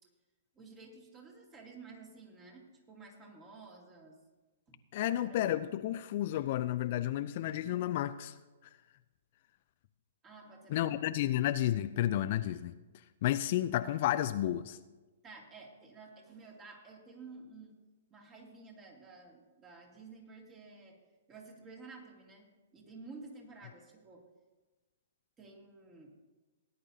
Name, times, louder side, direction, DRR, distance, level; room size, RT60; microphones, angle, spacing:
voice 1, 0.5-4.2 4.7-5.6 10.2-10.9 15.2-17.7 18.1-21.0 21.3-22.5 22.7-24.3 25.4-26.1, right 3 dB, 20° right, 0 dB, 2.4 m, -52 dB
voice 2, 4.9-8.4 10.7-12.7 13.2-14.8, left 13 dB, 50° left, 12 dB, 0.4 m, -31 dB
18.0 x 10.0 x 2.8 m, 1.2 s
figure-of-eight pair, 120°, 0 cm